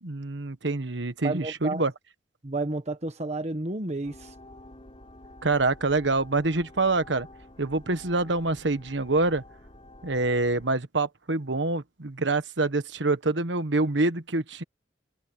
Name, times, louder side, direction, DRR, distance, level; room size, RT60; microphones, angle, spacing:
voice 1, 0.0-1.9 5.4-7.3 7.6-9.4 10.0-14.6, right 2 dB, 75° right, 1.4 m, -26 dB
voice 2, 1.2-1.8 2.4-4.3, right 2 dB, 35° right, 1.4 m, -31 dB
sound 1, 4.0-10.7, left 1 dB, 30° left, 3.9 m, -49 dB
head